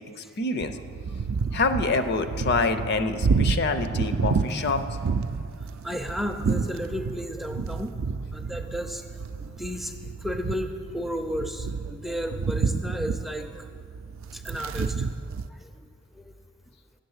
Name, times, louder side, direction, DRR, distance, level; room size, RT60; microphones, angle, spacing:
voice 1, 0.4-0.7 1.5-4.8, left 3 dB, 55° left, 9 dB, 0.6 m, -26 dB
sound 1, 0.6-15.5, right 4 dB, 75° right, 0.4 m, -30 dB
voice 2, 5.8-7.9 8.3-9.0 9.4-13.7 14.3-15.1 15.6-15.9 16.1-16.2, equal, ahead, 5 dB, 0.4 m, -33 dB
8.6 x 6.6 x 8.0 m, 2.1 s
head